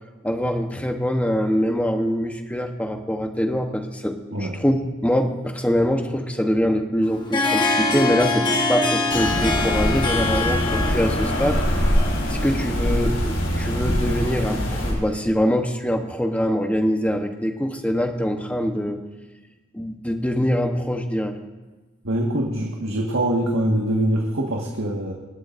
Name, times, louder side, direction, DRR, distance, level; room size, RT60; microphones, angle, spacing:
voice 1, 0.2-11.6 12.3-19.0 19.7-21.4, equal, 5° left, 5 dB, 1.0 m, -24 dB
Harp, 7.0-14.8, left 3 dB, 20° left, 1.5 m, -26 dB
sound 1, 9.1-14.9, equal, 85° left, 4.5 m, -23 dB
voice 2, 22.0-25.1, right 1 dB, 75° right, -1 dB, 1.7 m, -23 dB
27.0 x 12.5 x 2.6 m, 1.2 s
head